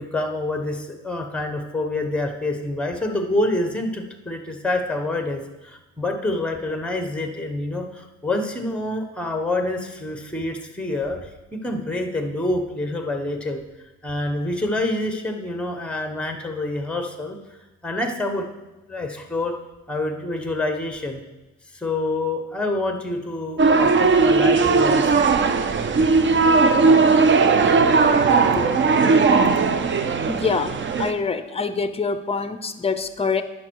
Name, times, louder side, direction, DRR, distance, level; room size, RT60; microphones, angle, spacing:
voice 1, 0.0-13.6 14.0-17.4 17.8-18.5 18.9-19.5 19.9-21.2 21.7-25.1, left 2 dB, 5° left, 5 dB, 1.2 m, -27 dB
sound 1, 23.6-31.1, right 4 dB, 40° right, 0.7 m, -17 dB
voice 2, 30.3-33.4, left 5 dB, 20° left, 11 dB, 0.6 m, -25 dB
11.0 x 5.4 x 4.7 m, 1.1 s
cardioid pair, 90°, 30 cm